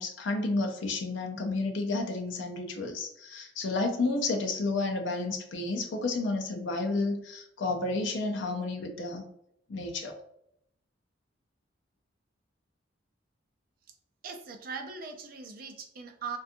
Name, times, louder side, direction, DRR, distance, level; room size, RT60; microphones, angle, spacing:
voice 1, 0.0-9.2 9.7-10.1, left 3 dB, 70° left, 4 dB, 0.4 m, -31 dB
voice 2, 14.2-16.4, right 5 dB, 45° right, 4 dB, 0.4 m, -40 dB
2.5 x 2.3 x 2.6 m, 0.76 s
head